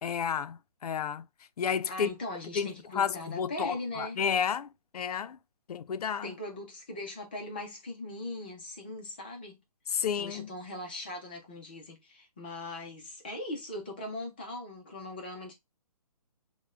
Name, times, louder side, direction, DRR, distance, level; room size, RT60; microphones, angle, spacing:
voice 1, 0.0-1.3 1.6-2.1 2.5-5.4 5.7-6.3 9.9-10.5, left 7 dB, 75° left, 0.4 m, -31 dB
voice 2, 1.9-4.2 6.2-9.6 10.2-15.5, left 1 dB, 15° left, 0.5 m, -40 dB
5.7 x 2.1 x 2.4 m
hypercardioid pair, 175°, 20 cm